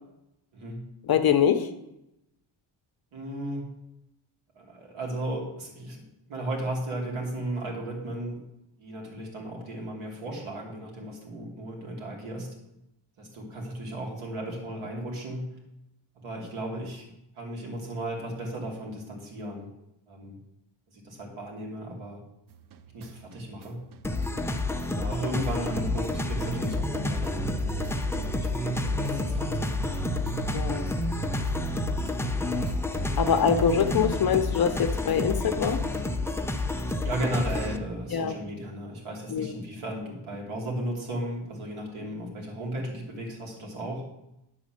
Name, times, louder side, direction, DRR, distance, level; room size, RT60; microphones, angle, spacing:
voice 1, 0.5-0.9 3.1-3.7 4.5-6.0 6.3-8.4 8.8-12.5 13.2-15.6 16.2-17.0 17.3-19.7 20.1-20.4 20.9-22.2 22.9-23.8 24.9-30.1 30.5-30.6 30.9-31.2 36.7-44.1, right 1 dB, 90° right, -1 dB, 2.9 m, -35 dB
voice 2, 1.1-1.7 30.5-30.9 33.2-35.8 38.1-38.3 39.3-39.5, left 7 dB, 50° left, 6 dB, 0.7 m, -24 dB
sound 1, 22.5-34.8 35.1-37.8, right 5 dB, 45° right, 0.5 m, -38 dB
sound 2, 24.0-37.8, left 2 dB, 5° left, 0.4 m, -30 dB
10.0 x 4.1 x 7.5 m, 0.86 s
wide cardioid pair, 160°, 47 cm